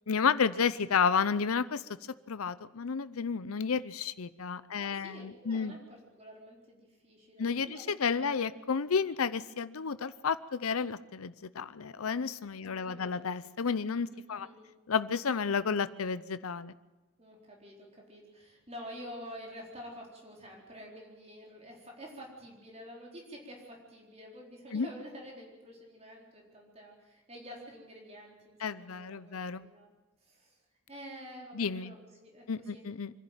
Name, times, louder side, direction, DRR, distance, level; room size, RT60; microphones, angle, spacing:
voice 1, 0.1-1.8 2.3-5.7 7.4-14.5 14.9-16.7 24.7-24.9 28.6-29.6 31.5-31.9 32.5-33.1, left 6 dB, 85° left, 15 dB, 0.6 m, -31 dB
voice 2, 4.7-8.4 12.6-13.3 14.1-14.7 17.2-29.9 30.2-30.6 30.9-32.9, equal, 30° right, -1 dB, 4.2 m, -49 dB
25.0 x 11.5 x 9.1 m, 1.1 s
head